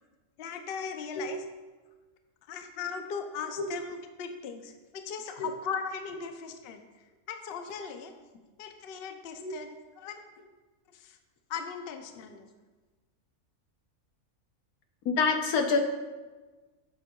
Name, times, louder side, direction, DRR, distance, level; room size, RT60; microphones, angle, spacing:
voice 1, 0.4-1.4 2.5-6.8 7.3-8.1 8.6-10.3 10.9-11.2 11.5-12.5, left 6 dB, 60° left, 6 dB, 0.7 m, -38 dB
voice 2, 15.0-15.8, left 4 dB, 85° left, 5 dB, 1.3 m, -26 dB
7.9 x 7.7 x 2.3 m, 1.3 s
omnidirectional pair, 1.5 m